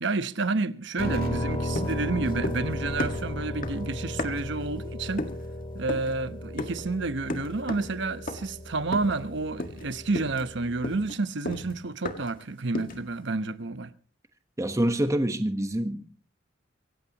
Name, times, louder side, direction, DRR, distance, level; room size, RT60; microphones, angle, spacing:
voice 1, 0.0-5.3 5.7-13.9, right 3 dB, 65° right, 1.0 m, -30 dB
Piano, 1.0-11.1, left 1 dB, 30° left, 3.2 m, -35 dB
Explosion, 1.0-6.4, right 1 dB, 50° right, 2.4 m, -47 dB
sound 1, 1.7-2.7 3.0-4.6 5.2-5.5 5.9-6.2 6.6-6.9 7.3-8.0 8.3-8.6 8.9-9.3 9.6-9.9 10.1-12.4 12.7-13.1, left 1 dB, 45° left, 1.7 m, -35 dB
voice 2, 14.6-16.1, right 1 dB, 15° right, 1.2 m, -26 dB
25.5 x 15.5 x 3.0 m
head